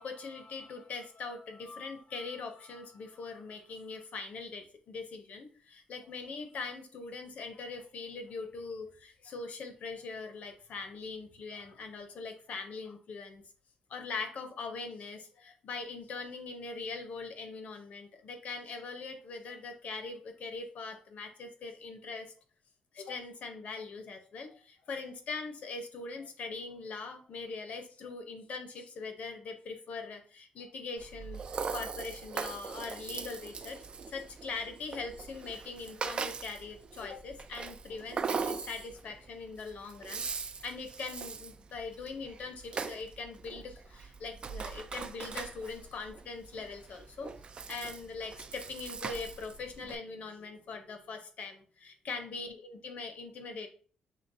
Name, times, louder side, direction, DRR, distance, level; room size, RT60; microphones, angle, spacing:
voice 1, 0.0-13.4 13.9-22.3 22.9-40.2 40.6-53.7, left 4 dB, 55° left, 6 dB, 0.8 m, -42 dB
Rattle (instrument), 31.0-49.9, right 5 dB, 35° right, 0.3 m, -41 dB
6.4 x 2.9 x 2.6 m, 0.42 s
cardioid pair, 130°, 3 cm